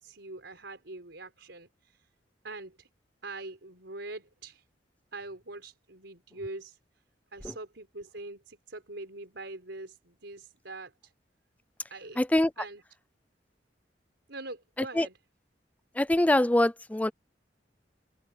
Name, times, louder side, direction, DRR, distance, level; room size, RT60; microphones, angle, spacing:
voice 1, 0.0-2.1 2.4-2.9 3.2-4.6 5.1-6.8 7.3-11.1 11.9-12.2 12.6-12.8 14.3-15.2, right 2 dB, 85° right, 4.4 m, -43 dB
voice 2, 12.2-12.5 15.0-15.1 16.0-17.1, left 1 dB, 10° left, 0.4 m, -23 dB
open air
head